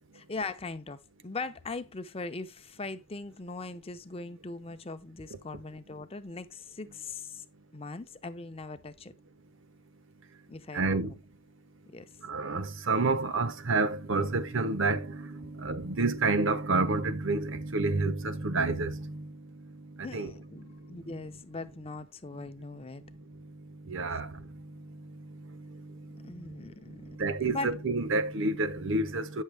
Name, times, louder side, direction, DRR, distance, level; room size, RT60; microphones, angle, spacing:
voice 1, 0.2-7.4 7.7-9.1 10.5-11.2 11.9-12.1 20.0-23.0 24.1-24.2 26.2-27.1 27.5-27.7, left 3 dB, 25° left, 0.6 m, -40 dB
voice 2, 10.7-11.1 12.2-20.3 20.7-21.0 23.7-26.6 26.9-29.4, right 3 dB, 60° right, 0.8 m, -30 dB
9.0 x 6.4 x 3.3 m
head